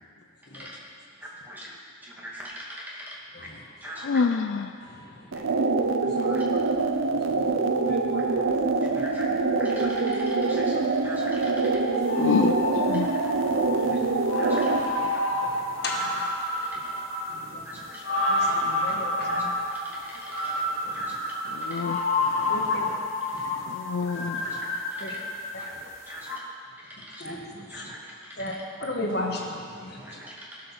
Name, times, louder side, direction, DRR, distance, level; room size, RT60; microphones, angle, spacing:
voice 1, 1.2-1.8 2.0-3.5 3.8-4.2 6.2-6.5 8.8-9.3 9.6-10.8 11.0-11.8 12.9-13.0 14.4-14.7 16.0-16.1 16.6-16.8 17.6-18.0 18.3-18.5 19.2-19.4 19.7-20.7 20.9-21.2 21.6-21.8 24.4-25.2 25.6-25.7 26.1-26.4 26.8-27.4 27.7-28.6 30.0-30.5, equal, 10° right, -5 dB, 2.1 m, -42 dB
voice 2, 4.1-4.6 12.1-13.1 21.7-22.0 23.7-24.4 29.2-29.3, left 5 dB, 70° left, 9 dB, 0.4 m, -26 dB
voice 3, 4.8-5.1 6.0-6.4 7.1-7.5 7.9-8.2 8.9-9.0 12.9-13.0 13.6-14.1 14.5-14.6 15.4-15.5 15.8-16.1 17.3-17.7 18.3-19.4 20.9-21.0 22.2-22.9 23.3-23.7 24.1-24.5 25.0-25.1 27.2-27.8 28.4-28.5 28.8-30.1, left 1 dB, 55° left, 0 dB, 1.5 m, -36 dB
sound 1, 5.3-14.9, right 3 dB, 90° right, 0.7 m, -25 dB
sound 2, 12.0-26.0 26.2-26.4, left 2 dB, 85° left, 2.2 m, -29 dB
18.5 x 6.4 x 6.0 m, 2.3 s
head